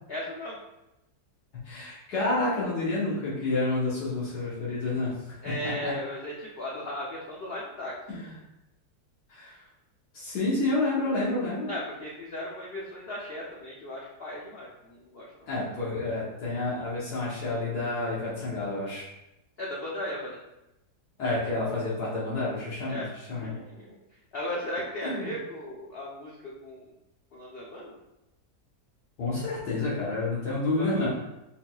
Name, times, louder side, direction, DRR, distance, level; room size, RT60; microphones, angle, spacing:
voice 1, 0.1-0.6 5.4-8.0 11.7-15.5 19.6-20.4 22.9-23.1 23.4-24.0 24.3-26.9 27.3-27.9 30.8-31.1, left 1 dB, 90° left, -4 dB, 0.5 m, -36 dB
voice 2, 1.6-5.1 5.4-5.9 8.1-8.2 9.3-9.5 10.1-11.7 15.5-19.1 21.2-23.0 23.3-23.5 25.0-25.3 29.2-31.1, left 2 dB, 70° left, -7 dB, 1.6 m, -29 dB
4.1 x 3.9 x 2.3 m, 0.92 s
omnidirectional pair, 1.8 m